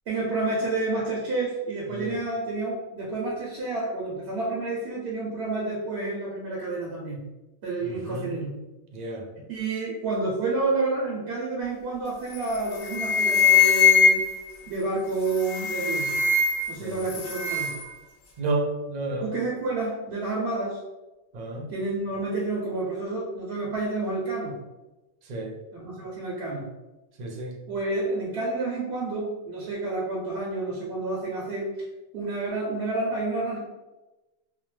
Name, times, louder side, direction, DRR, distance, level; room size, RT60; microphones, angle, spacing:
voice 1, 0.1-7.2 7.6-8.5 9.5-14.2 14.7-16.2 16.7-17.7 19.2-20.8 21.7-24.6 25.7-26.7 27.7-31.7 32.1-33.6, right 3 dB, 75° right, -4 dB, 0.9 m, -29 dB
voice 2, 7.8-8.3 8.9-9.3 16.8-17.0 18.4-19.3 21.3-21.7 25.2-25.5 27.2-27.6, right 2 dB, 55° right, 1 dB, 0.5 m, -31 dB
sound 1, 12.3-12.6 12.9-14.5 15.3-16.8 17.1-17.9, left 5 dB, 60° left, 0.6 m, -21 dB
2.8 x 2.1 x 3.2 m, 1.1 s
omnidirectional pair, 1.1 m